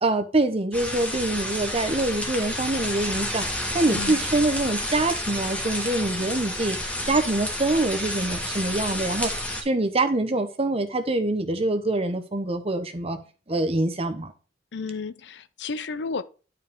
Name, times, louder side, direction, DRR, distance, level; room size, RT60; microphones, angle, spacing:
voice 1, 0.0-9.3 9.6-13.2 13.5-14.3, right 2 dB, 35° right, 1.0 m, -25 dB
sound 1, 0.7-9.6, left 1 dB, 5° left, 1.4 m, -30 dB
voice 2, 3.8-4.2 14.7-16.2, left 4 dB, 70° left, 0.6 m, -32 dB
10.5 x 4.9 x 3.6 m
head